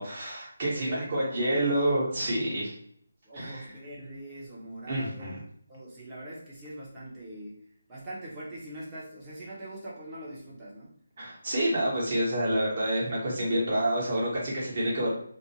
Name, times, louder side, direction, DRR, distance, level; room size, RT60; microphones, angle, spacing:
voice 1, 0.0-2.7 3.3-3.6 4.9-5.4 11.2-15.1, right 1 dB, 40° right, -5 dB, 1.2 m, -28 dB
voice 2, 0.7-1.6 3.2-5.3 5.7-7.6 7.9-10.9, right 1 dB, 15° right, -7 dB, 0.8 m, -42 dB
2.5 x 2.1 x 2.8 m, 0.63 s
figure-of-eight pair, 160°, 0 cm